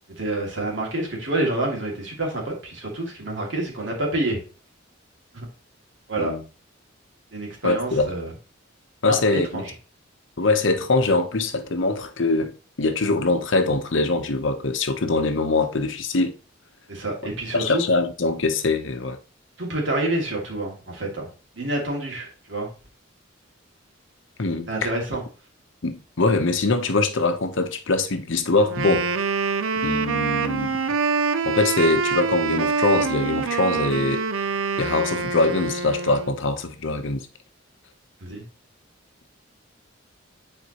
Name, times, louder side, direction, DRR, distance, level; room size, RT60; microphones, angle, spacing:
voice 1, 0.2-4.4 5.3-5.4 6.1-6.3 7.3-8.3 9.1-9.6 16.9-17.8 19.6-21.3 21.6-22.7 24.7-25.2 38.2-38.4, right 2 dB, 60° right, 2.4 m, -27 dB
voice 2, 7.6-8.1 9.0-9.6 10.4-16.3 17.5-19.2 24.4-24.9 25.8-29.1 29.7-30.8 31.4-34.2 34.8-37.3, left 3 dB, 65° left, 0.8 m, -23 dB
Wind instrument woodwind instrument, 28.7-36.4, right 5 dB, 85° right, 0.6 m, -25 dB
9.3 x 4.2 x 2.9 m
head